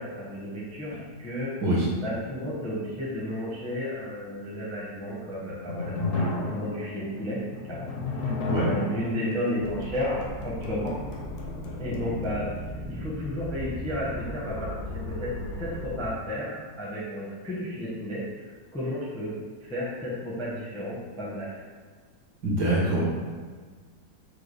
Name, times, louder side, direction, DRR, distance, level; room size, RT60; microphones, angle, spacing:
voice 1, 0.0-1.6 2.0-8.3 8.6-11.0 11.8-12.6 12.8-18.5 18.7-21.6, left 1 dB, 5° left, -6 dB, 0.6 m, -33 dB
sound 1, 5.2-12.3, left 2 dB, 60° left, 0.8 m, -34 dB
sound 2, 9.6-16.1, left 1 dB, 85° left, 1.4 m, -37 dB
voice 2, 22.4-23.0, right 1 dB, 65° right, -6 dB, 1.9 m, -24 dB
4.7 x 2.3 x 4.8 m, 1.5 s
omnidirectional pair, 2.0 m